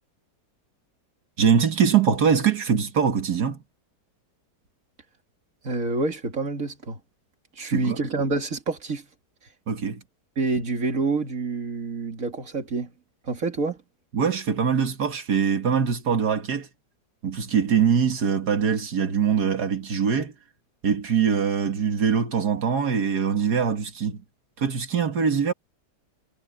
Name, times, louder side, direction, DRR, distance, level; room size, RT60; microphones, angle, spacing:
voice 1, 1.4-3.6 7.6-8.0 9.7-10.0 14.1-16.7 17.2-20.3 20.8-24.2 24.6-25.5, right 7 dB, 75° right, 2.3 m, -23 dB
voice 2, 5.6-7.0 7.6-9.1 10.4-12.9 13.2-13.8, right 3 dB, 55° right, 2.6 m, -27 dB
omnidirectional pair, 1.8 m